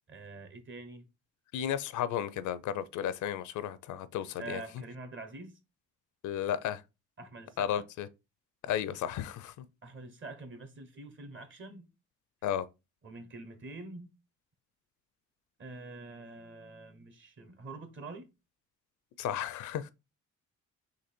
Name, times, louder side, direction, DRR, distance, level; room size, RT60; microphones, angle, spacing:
voice 1, 0.1-1.0 4.4-5.5 7.2-7.9 9.8-11.9 13.0-14.1 15.6-18.3, right 3 dB, 40° right, 1.1 m, -45 dB
voice 2, 1.5-4.6 6.2-6.8 7.6-8.1 8.7-9.6 12.4-12.7 19.2-19.9, left 10 dB, 75° left, 0.5 m, -33 dB
4.0 x 2.9 x 4.3 m
cardioid pair, 90°, 30 cm